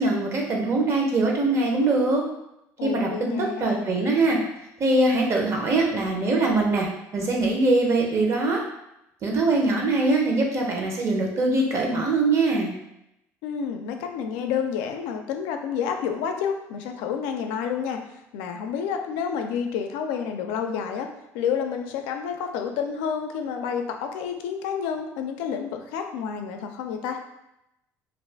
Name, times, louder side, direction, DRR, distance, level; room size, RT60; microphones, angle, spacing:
voice 1, 0.0-2.2 2.8-4.4 4.8-6.9 7.1-8.6 9.2-12.7, right 2 dB, 40° right, 0 dB, 0.7 m, -22 dB
voice 2, 2.8-4.0 13.4-21.1 21.3-27.2, left 7 dB, 85° left, 5 dB, 0.4 m, -29 dB
2.4 x 2.3 x 3.3 m, 0.85 s
supercardioid pair, 100°, 7 cm